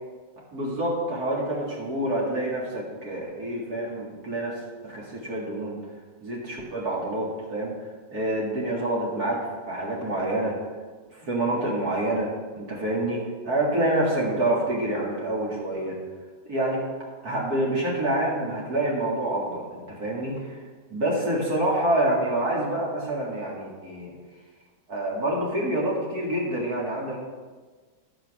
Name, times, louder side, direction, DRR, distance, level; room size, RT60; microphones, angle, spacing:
voice 1, 0.5-5.8 6.2-7.7 8.1-9.4 9.7-10.6 11.1-16.0 16.4-16.8 17.2-20.6 20.9-24.1 24.9-27.2, right 1 dB, 55° right, -4 dB, 2.6 m, -27 dB
12.0 x 5.1 x 6.3 m, 1.4 s
omnidirectional pair, 1.9 m